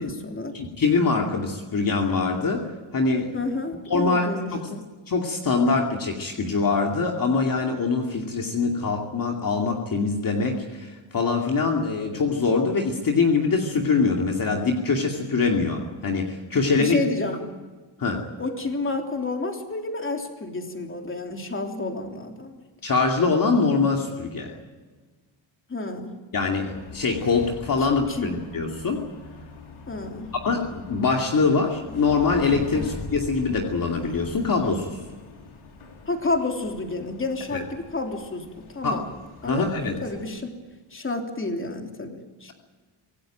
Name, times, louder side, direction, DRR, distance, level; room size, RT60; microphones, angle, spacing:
voice 1, 0.0-0.6 3.3-4.8 16.8-17.4 18.4-22.6 25.7-26.2 28.1-28.3 29.9-30.3 32.7-32.9 36.1-38.5 38.7-39.0 39.4-39.7 40.0-40.5 40.9-42.5, left 2 dB, 25° left, 3 dB, 3.3 m, -30 dB
voice 2, 0.5-2.7 2.9-3.5 3.9-4.7 5.1-17.0 18.0-18.2 22.8-24.6 26.3-29.0 30.4-35.0 37.5-37.6 38.8-39.0 39.5-40.0, left 4 dB, 45° left, 1 dB, 2.6 m, -23 dB
sound 1, 26.7-40.2, left 4 dB, 80° left, 4.2 m, -42 dB
26.0 x 18.0 x 9.2 m, 1.4 s
wide cardioid pair, 150°, 48 cm